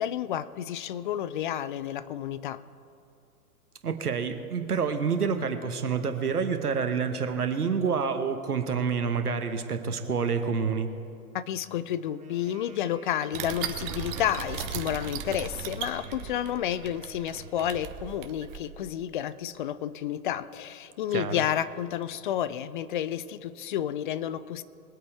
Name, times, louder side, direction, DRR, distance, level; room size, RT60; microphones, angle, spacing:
voice 1, 0.0-2.6 11.3-24.6, left 10 dB, 35° left, 16 dB, 0.4 m, -31 dB
voice 2, 3.8-10.9 21.1-21.4, right 6 dB, 85° right, 7 dB, 1.2 m, -28 dB
Wind instrument woodwind instrument, 12.0-17.9, right 4 dB, 15° right, 2.0 m, -52 dB
sound 1, 13.3-18.6, right 8 dB, 35° right, 1.2 m, -37 dB
21.5 x 8.5 x 4.6 m, 2.5 s
figure-of-eight pair, 115°, 44 cm